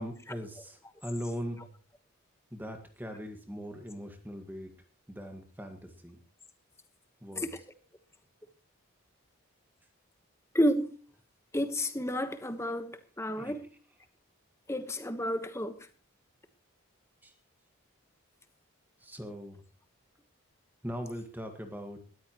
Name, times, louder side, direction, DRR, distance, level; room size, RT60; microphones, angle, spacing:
voice 1, 0.0-1.7 2.5-4.7 5.1-6.2 7.2-7.5 13.4-13.5 17.2-17.3 19.0-19.6 20.8-22.0, equal, 10° right, 1.6 m, -40 dB
voice 2, 10.5-10.9 11.5-13.7 14.7-15.9, equal, 10° left, 1.2 m, -31 dB
19.5 x 14.0 x 3.0 m
head